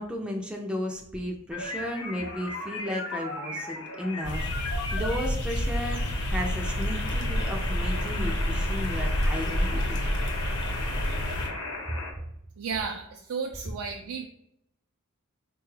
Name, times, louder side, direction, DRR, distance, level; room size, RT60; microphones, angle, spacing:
voice 1, 0.0-10.0, left 1 dB, 5° right, 1 dB, 0.3 m, -34 dB
sound 1, 1.5-12.1, left 2 dB, 90° left, 0.9 m, -36 dB
sound 2, 4.2-11.5, equal, 55° left, 0.8 m, -29 dB
voice 2, 12.6-14.3, right 5 dB, 85° right, 2 dB, 0.4 m, -33 dB
4.0 x 2.3 x 3.1 m, 0.77 s
head